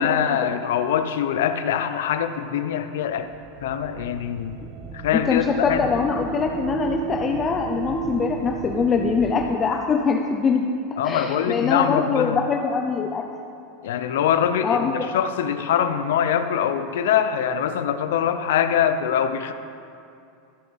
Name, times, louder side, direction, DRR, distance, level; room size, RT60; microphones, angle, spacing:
voice 1, 0.0-3.3 3.6-4.6 4.9-5.9 11.0-12.4 13.8-19.5, left 9 dB, 85° left, 10 dB, 0.5 m, -23 dB
sound 1, 3.1-9.6, right 9 dB, 45° right, 0.6 m, -34 dB
voice 2, 5.1-10.7 11.0-13.3 14.6-15.1, left 5 dB, 20° left, 3 dB, 0.4 m, -23 dB
13.5 x 7.3 x 4.0 m, 2.5 s
supercardioid pair, 155°, 0 cm